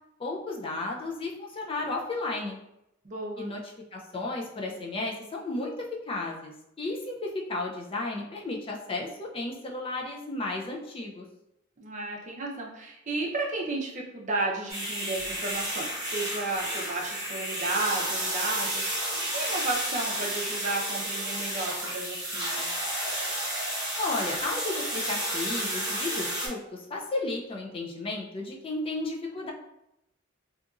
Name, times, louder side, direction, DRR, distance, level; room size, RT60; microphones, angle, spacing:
voice 1, 0.2-2.6 3.4-3.6 3.9-5.7 6.1-6.5 6.8-11.3 24.0-29.5, left 2 dB, 30° left, -1 dB, 0.4 m, -33 dB
voice 2, 3.0-3.6 11.8-22.7, right 2 dB, 40° right, -1 dB, 0.5 m, -33 dB
sound 1, 14.7-26.5, right 1 dB, 20° right, 1.0 m, -31 dB
2.8 x 2.5 x 2.3 m, 0.84 s
head